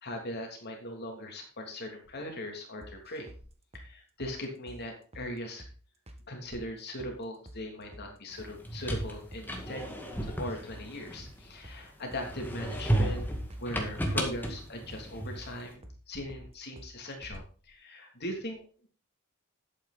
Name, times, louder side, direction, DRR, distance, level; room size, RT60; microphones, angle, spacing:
voice 1, 0.0-3.3 3.7-5.6 6.3-13.3 13.6-18.9, left 1 dB, 50° left, 2 dB, 3.1 m, -40 dB
sound 1, 2.8-3.4 3.7-3.9 4.2-4.4 4.7-4.8 5.1-5.3 5.6-5.8 6.1-6.2 6.5-7.2 7.5-7.6 7.9-8.1 8.4-8.5 8.8-9.0 9.3-9.5 9.8-9.9 10.2-10.9 11.2-11.3 11.6-11.8 12.1-12.3 12.6-12.7 13.0-13.2 13.5-13.7 14.0-14.6 14.9-15.1 15.4-15.5 15.8-16.0 16.3-16.5 16.8-16.9 17.2-17.4, right 1 dB, 30° right, 1.4 m, -48 dB
sound 2, 8.5-11.7 12.2-15.6, right 1 dB, 10° left, 2.1 m, -33 dB
11.5 x 8.7 x 4.3 m, 0.39 s
head